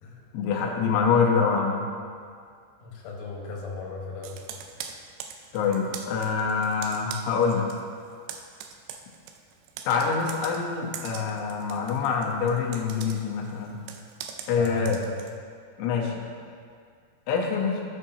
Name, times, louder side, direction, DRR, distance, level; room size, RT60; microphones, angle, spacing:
voice 1, 0.3-1.8 5.5-7.7 9.9-13.8 14.5-15.0 15.8-16.3 17.3-17.9, left 5 dB, 85° left, -1 dB, 3.2 m, -25 dB
voice 2, 2.8-4.4 14.5-15.2, left 3 dB, 60° left, -3 dB, 2.5 m, -37 dB
Computer keyboard, 4.2-7.8 8.1-15.4, right 8 dB, 80° right, 2.7 m, -42 dB
14.0 x 6.5 x 2.7 m, 2.2 s
omnidirectional pair, 5.1 m